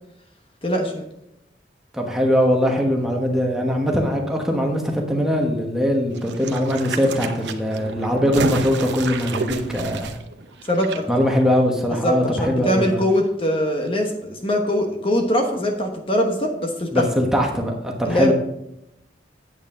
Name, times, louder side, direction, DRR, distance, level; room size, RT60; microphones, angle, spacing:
voice 1, 0.6-1.1 10.7-11.0 12.0-17.0 18.0-18.3, equal, 30° left, 3 dB, 1.0 m, -22 dB
voice 2, 1.9-10.2 11.1-13.0 16.9-18.3, equal, 5° right, 0 dB, 1.1 m, -21 dB
sound 1, 6.1-11.0 11.3-11.4, right 4 dB, 80° right, 0.8 m, -31 dB
8.8 x 8.1 x 3.7 m, 0.85 s
head